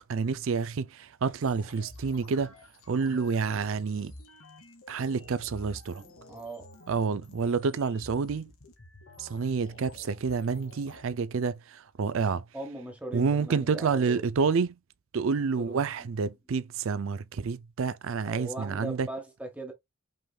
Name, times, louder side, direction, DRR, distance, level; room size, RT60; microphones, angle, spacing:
voice 1, 0.0-2.5 2.9-4.1 4.9-6.0 6.9-8.5 9.2-12.4 13.1-14.7 15.1-19.1, right 5 dB, 60° right, 0.4 m, -29 dB
sound 1, 1.3-11.0, left 2 dB, 65° left, 1.4 m, -50 dB
voice 2, 6.0-6.6 12.5-14.2 15.6-15.8 18.2-19.7, right 2 dB, 5° right, 1.1 m, -39 dB
5.5 x 3.5 x 2.3 m
head